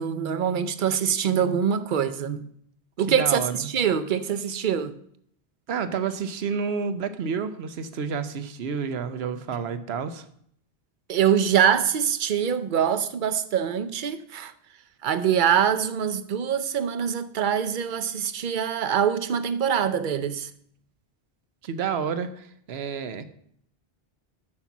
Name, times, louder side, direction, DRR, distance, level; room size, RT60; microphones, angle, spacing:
voice 1, 0.0-2.4 3.0-4.9 11.1-14.5 15.0-20.5, right 8 dB, 55° right, 0.7 m, -24 dB
voice 2, 3.1-3.7 5.7-10.2 21.6-23.2, right 6 dB, 80° right, 1.0 m, -30 dB
6.6 x 5.7 x 6.9 m
omnidirectional pair, 1.0 m